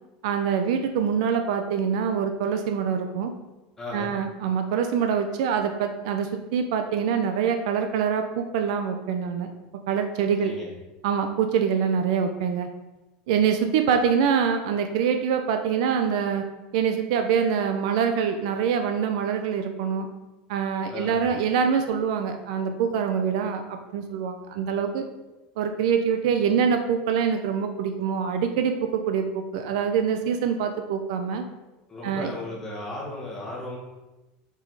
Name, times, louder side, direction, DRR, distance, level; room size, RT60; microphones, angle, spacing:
voice 1, 0.2-3.3 3.9-9.5 9.9-10.5 11.0-12.7 13.3-16.4 16.7-20.1 20.5-25.1 25.6-31.4 32.0-32.3, right 7 dB, 60° right, 7 dB, 0.6 m, -25 dB
voice 2, 3.8-4.1 10.4-10.7 20.9-21.2 31.9-33.8, left 2 dB, 10° left, -5 dB, 1.7 m, -35 dB
6.4 x 4.6 x 4.7 m, 1.1 s
supercardioid pair, 175°, 4 cm